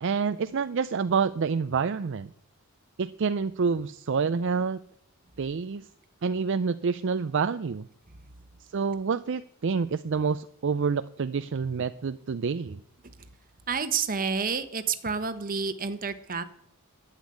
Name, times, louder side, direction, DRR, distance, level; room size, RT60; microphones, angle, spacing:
voice 1, 0.0-2.3 3.0-4.8 5.4-5.9 6.2-7.9 8.7-12.8, right 5 dB, 55° right, 12 dB, 0.4 m, -28 dB
voice 2, 13.7-16.4, right 5 dB, 40° right, 10 dB, 1.1 m, -29 dB
11.5 x 8.2 x 9.6 m, 0.71 s
head